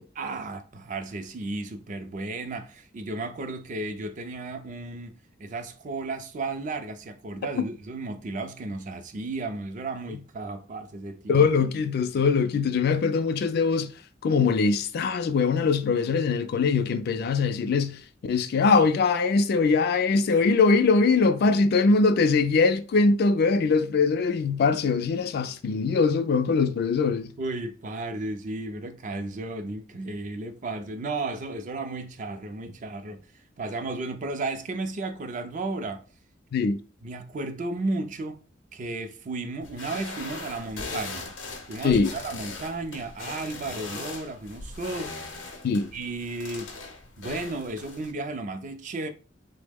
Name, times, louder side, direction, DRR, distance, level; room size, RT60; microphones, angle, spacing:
voice 1, 0.2-5.1 5.4-11.5 27.4-33.2 33.6-36.0 37.0-38.4 38.7-41.3 41.7-45.5 45.9-46.7 47.2-49.1, right 2 dB, 45° right, 0.4 m, -34 dB
voice 2, 11.3-13.9 14.2-27.3 36.5-36.8 41.8-42.1 45.6-45.9, left 4 dB, 55° left, 0.3 m, -22 dB
sound 1, 39.6-48.1, left 3 dB, 85° left, 0.7 m, -39 dB
3.5 x 2.0 x 3.4 m
head